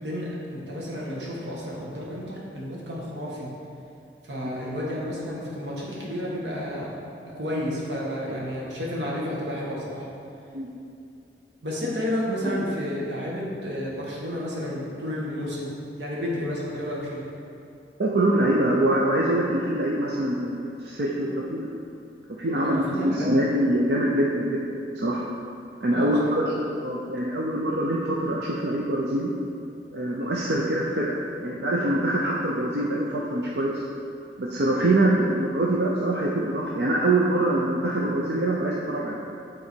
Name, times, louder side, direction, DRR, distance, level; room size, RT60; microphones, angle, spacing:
voice 1, 0.0-3.5 4.2-6.9 7.3-10.1 11.6-17.2 22.5-23.4 25.9-26.4, equal, 85° right, -4 dB, 1.6 m, -31 dB
voice 2, 18.0-21.7 22.4-24.6 25.0-25.2 25.8-26.4 26.8-29.3 29.9-33.8 34.4-39.2, right 1 dB, 65° right, -3 dB, 0.6 m, -24 dB
8.6 x 3.8 x 4.5 m, 2.6 s
head